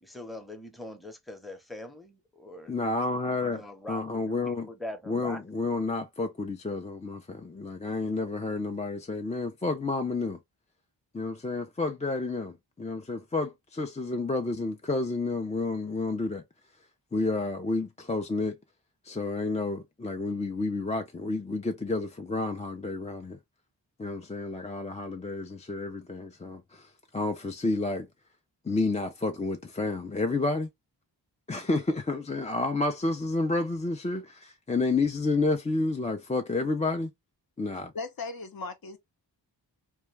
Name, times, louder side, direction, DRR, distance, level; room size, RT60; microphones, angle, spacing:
voice 1, 0.0-2.7 3.4-5.6, left 1 dB, ahead, 0.7 m, -43 dB
voice 2, 2.7-3.6 3.9-4.7 5.1-10.4 11.1-16.4 17.1-18.6 19.0-23.4 24.0-26.9 27.1-28.1 28.7-30.7 31.5-37.1 37.6-37.9, left 3 dB, 15° left, 0.4 m, -30 dB
voice 3, 37.9-39.0, left 3 dB, 50° left, 0.7 m, -37 dB
2.2 x 2.2 x 3.1 m
cardioid pair, 45°, 45 cm